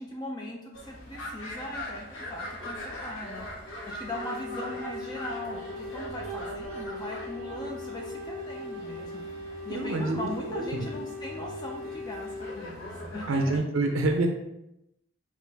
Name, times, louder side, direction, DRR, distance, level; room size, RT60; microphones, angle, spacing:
voice 1, 0.0-3.5 3.9-9.2 9.6-13.9, left 1 dB, 20° left, -2 dB, 0.4 m, -39 dB
sound 1, 0.7-13.6, left 1 dB, 80° left, 0.9 m, -42 dB
Wind instrument woodwind instrument, 4.0-12.6, left 2 dB, 15° right, 0.8 m, -39 dB
voice 2, 9.7-10.9 13.3-14.3, right 2 dB, 70° right, 4 dB, 0.5 m, -27 dB
4.2 x 2.5 x 3.9 m, 0.87 s
head